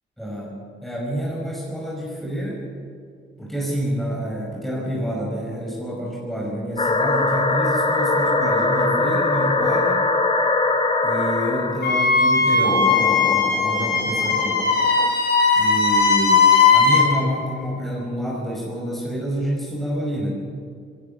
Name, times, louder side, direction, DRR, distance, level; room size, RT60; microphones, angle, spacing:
voice 1, 0.2-2.6 3.4-10.0 11.0-14.6 15.6-16.5 16.7-20.3, equal, ahead, -4 dB, 5.5 m, -28 dB
sound 1, 6.8-11.8 12.6-15.1, left 3 dB, 30° left, 2.6 m, -22 dB
Wind instrument woodwind instrument, 11.8-17.1, left 4 dB, 55° left, 6.5 m, -18 dB
20.0 x 17.5 x 8.1 m, 2.3 s
cardioid pair, 90°, 20 cm